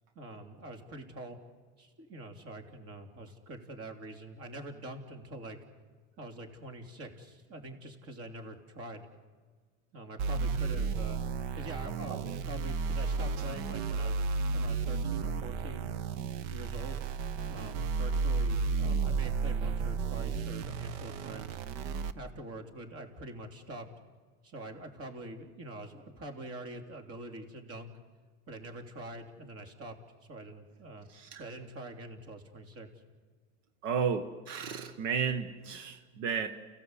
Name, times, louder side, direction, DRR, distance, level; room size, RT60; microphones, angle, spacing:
voice 1, 0.2-1.4 1.8-5.6 6.2-9.1 9.9-11.2 11.5-15.9 16.5-17.0 17.5-21.6 22.1-23.8 24.4-27.9 28.5-29.9 30.2-31.1 31.4-32.9, right 1 dB, 40° right, 5 dB, 3.4 m, -45 dB
sound 1, 10.2-22.1, right 4 dB, 70° right, 1.1 m, -33 dB
voice 2, 33.8-36.5, right 6 dB, 85° right, 8 dB, 1.6 m, -33 dB
29.5 x 16.5 x 8.2 m, 1.5 s
supercardioid pair, 120°, 36 cm